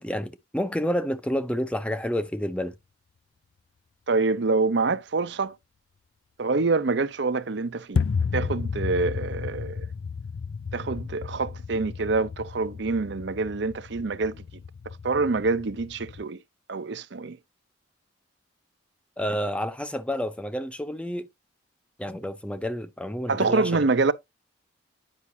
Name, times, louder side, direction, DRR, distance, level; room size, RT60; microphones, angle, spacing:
voice 1, 0.0-2.8 19.2-21.3 22.0-23.7, equal, 5° left, 0.5 m, -29 dB
voice 2, 4.1-5.5 6.4-8.0 8.3-9.9 10.7-14.4 15.0-16.4 16.7-17.4 23.3-24.1, right 3 dB, 55° right, 0.6 m, -26 dB
sound 1, 7.9-16.2, left 5 dB, 70° left, 0.5 m, -33 dB
9.7 x 5.8 x 2.7 m
head